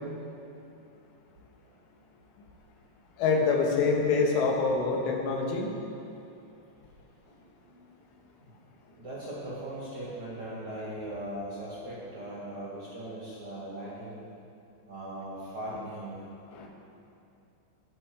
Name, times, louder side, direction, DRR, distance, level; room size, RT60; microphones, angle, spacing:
voice 1, 3.2-5.8 16.5-16.7, left 4 dB, 75° left, 1 dB, 3.7 m, -26 dB
voice 2, 7.2-7.9 9.0-14.2 14.9-16.2, right 1 dB, 40° right, -7 dB, 2.0 m, -39 dB
20.5 x 7.0 x 4.8 m, 2.7 s
omnidirectional pair, 5.8 m